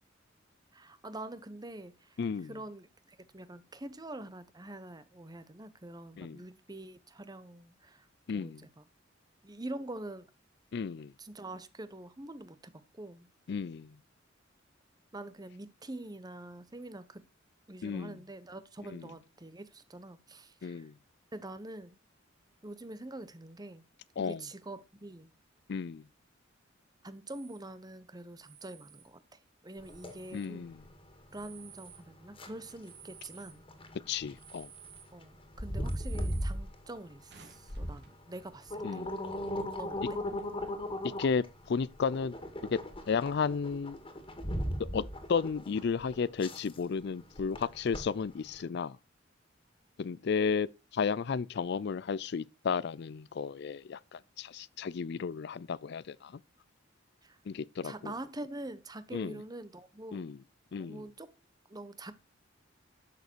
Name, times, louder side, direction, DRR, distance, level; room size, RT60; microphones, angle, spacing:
voice 1, 0.7-8.1 8.3-8.9 9.4-10.3 11.2-13.3 15.1-17.2 17.7-20.9 21.3-22.0 22.6-23.8 24.2-25.3 27.0-30.7 31.3-33.6 35.1-39.1 39.8-40.2 57.2-57.4 57.8-60.3 60.8-61.3 61.7-62.1, right 1 dB, 20° right, 0.9 m, -45 dB
voice 2, 2.2-2.5 6.2-6.4 8.3-8.6 10.7-11.1 13.5-13.9 17.8-18.2 18.9-19.0 20.6-20.9 24.2-24.4 25.7-26.0 30.3-30.8 34.1-34.7 38.8-39.1 41.2-42.3 42.7-42.8 43.1-44.0 44.8-45.0 45.3-49.0 50.0-56.4 57.5-58.1 59.1-59.3 60.1-60.4 60.7-61.0, left 5 dB, 60° left, 0.4 m, -33 dB
sound 1, 27.3-27.6 28.4-29.1 29.7-30.5 31.2-32.0 32.8-33.6 34.3-35.1 35.8-36.5 37.0-38.2 38.7-38.8 39.0-39.4 40.0-40.3, right 8 dB, 60° right, 2.5 m, -55 dB
sound 2, 29.8-48.6, equal, 25° left, 2.3 m, -39 dB
12.0 x 6.7 x 4.5 m
head